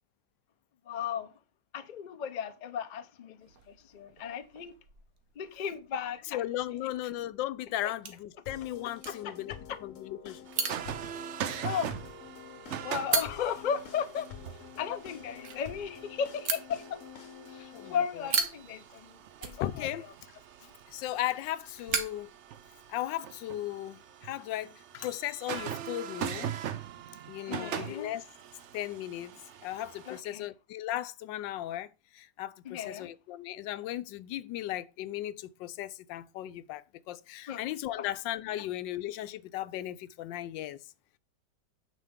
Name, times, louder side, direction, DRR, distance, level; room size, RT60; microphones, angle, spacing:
voice 1, 0.9-1.3 1.7-4.7 5.4-6.5 6.7-6.8 7.8-7.9 9.1-9.8 11.5-11.9 12.7-14.3 14.8-17.0 17.5-19.9 27.5-28.1 30.1-30.5 32.6-33.1 37.5-37.6 38.0-38.1, left 7 dB, 75° left, 0.4 m, -36 dB
sound 1, 3.4-23.1, right 6 dB, 55° right, 1.4 m, -40 dB
voice 2, 6.3-9.5 9.8-10.5 17.7-18.0 19.6-20.0 20.9-22.3 22.9-26.5 27.3-28.2 28.7-40.8, left 13 dB, 90° left, 1.3 m, -36 dB
sound 2, 8.5-18.1, left 8 dB, 55° left, 1.1 m, -48 dB
sound 3, 10.5-30.2, right 9 dB, 80° right, 0.6 m, -42 dB
9.1 x 5.8 x 3.6 m
omnidirectional pair, 1.9 m